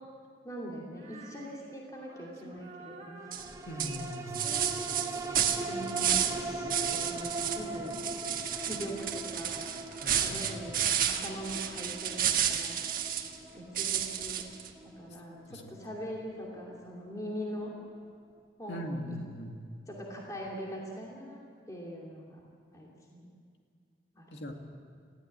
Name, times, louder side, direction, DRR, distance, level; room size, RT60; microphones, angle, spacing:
voice 1, 0.4-3.4 3.8-4.0 5.7-8.0 8.6-9.7 10.1-12.8 13.5-14.4 15.0-17.7 18.6-19.0 19.9-22.4 22.7-23.3 24.1-24.5, equal, 20° left, -3 dB, 2.7 m, -42 dB
Female singing, 0.9-8.3, right 2 dB, 35° right, 2.0 m, -50 dB
sound 1, 3.3-18.0 18.4-18.5, right 2 dB, 20° right, 1.0 m, -41 dB
sound 2, 3.3-3.5 3.8-6.4 6.7-7.6 7.9-13.3 13.8-14.7, right 9 dB, 50° right, 1.5 m, -31 dB
voice 2, 3.7-4.6 10.0-10.5 15.5-15.6 18.7-19.6 24.3-24.5, equal, 85° left, 2 dB, 2.1 m, -40 dB
20.5 x 15.5 x 8.8 m, 2.3 s
head